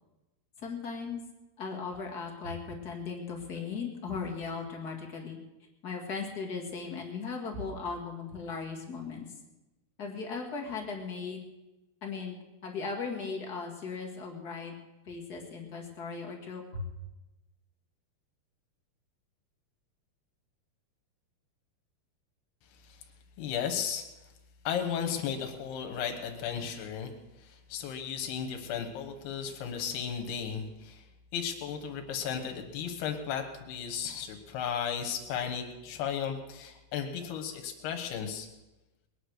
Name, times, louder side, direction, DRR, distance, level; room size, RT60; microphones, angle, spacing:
voice 1, 0.6-1.2 1.6-5.4 5.8-9.3 10.0-11.4 12.0-12.3 12.6-14.7 15.0-16.9, left 5 dB, 35° left, 0 dB, 1.7 m, -37 dB
voice 2, 23.4-24.1 24.6-27.1 27.4-31.0 31.3-38.5, left 8 dB, 80° left, 3 dB, 3.3 m, -35 dB
20.5 x 10.0 x 6.5 m, 1.0 s
omnidirectional pair, 4.5 m